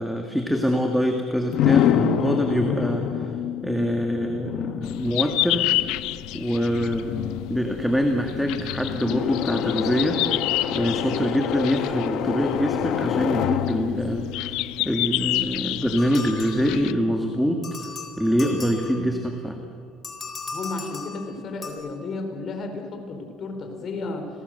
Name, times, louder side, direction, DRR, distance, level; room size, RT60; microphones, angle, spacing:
voice 1, 0.0-3.3 3.6-5.7 6.3-7.2 7.5-10.2 10.7-17.6 18.2-19.6, equal, ahead, 3 dB, 1.9 m, -24 dB
sound 1, 1.5-15.4, left 9 dB, 60° left, 1.2 m, -27 dB
sound 2, 4.9-16.9, left 17 dB, 80° left, 0.7 m, -29 dB
sound 3, 16.0-17.1 17.6-19.3 20.0-21.7, left 4 dB, 25° left, 3.9 m, -37 dB
voice 2, 20.5-24.3, left 3 dB, 40° left, 5 dB, 4.5 m, -33 dB
29.5 x 22.0 x 6.7 m, 2.2 s
cardioid pair, 135°, 0 cm